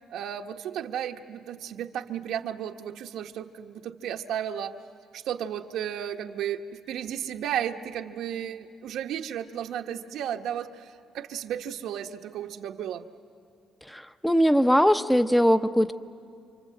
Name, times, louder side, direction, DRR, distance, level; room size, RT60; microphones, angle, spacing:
voice 1, 0.0-4.7 5.1-13.0, right 9 dB, 80° right, 5 dB, 1.2 m, -34 dB
voice 2, 13.9-15.9, equal, 5° left, 11 dB, 0.7 m, -21 dB
29.0 x 25.0 x 7.8 m, 2.4 s
cardioid pair, 135°, 0 cm